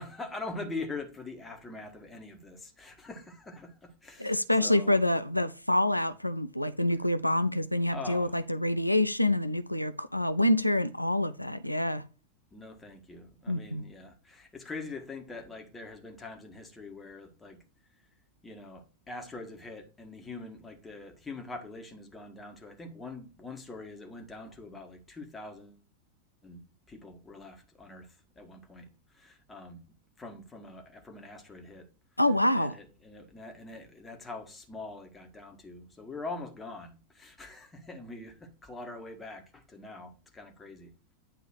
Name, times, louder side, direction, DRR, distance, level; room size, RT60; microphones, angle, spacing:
voice 1, 0.0-5.0 7.9-8.4 12.5-17.6 18.4-25.8 26.4-29.9 30.2-31.9 32.6-40.9, left 3 dB, 15° left, 1.6 m, -43 dB
voice 2, 4.2-12.0 13.5-13.9 32.2-32.7, left 1 dB, 90° left, 0.4 m, -27 dB
9.4 x 3.6 x 4.4 m
figure-of-eight pair, 90°, 0 cm